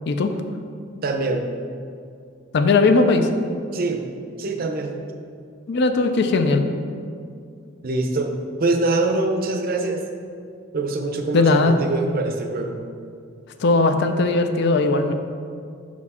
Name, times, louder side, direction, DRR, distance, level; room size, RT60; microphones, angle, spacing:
voice 1, 1.0-1.4 3.7-4.0 4.4-4.9 7.8-8.3 8.6-10.0 10.7-12.8, right 2 dB, 50° right, 4 dB, 0.5 m, -23 dB
voice 2, 2.5-3.3 5.7-6.7 11.3-11.8 13.6-15.1, left 3 dB, 60° left, 7 dB, 0.4 m, -18 dB
5.9 x 4.3 x 4.2 m, 2.3 s
head